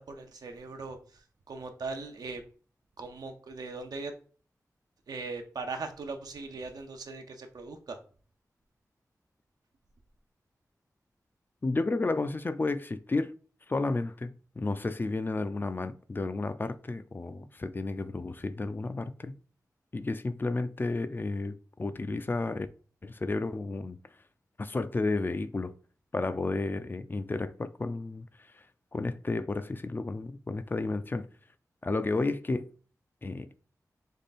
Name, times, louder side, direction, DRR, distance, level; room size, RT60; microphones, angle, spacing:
voice 1, 0.0-2.4 3.0-4.1 5.1-8.0, right 3 dB, 85° right, 0.7 m, -39 dB
voice 2, 11.6-13.3 13.7-19.4 19.9-22.7 23.0-24.0 24.6-25.7 26.1-28.3 28.5-28.6 28.9-31.3 31.8-32.7 33.2-33.5, left 3 dB, 30° left, 0.3 m, -32 dB
3.5 x 3.3 x 4.1 m
wide cardioid pair, 80°, 6 cm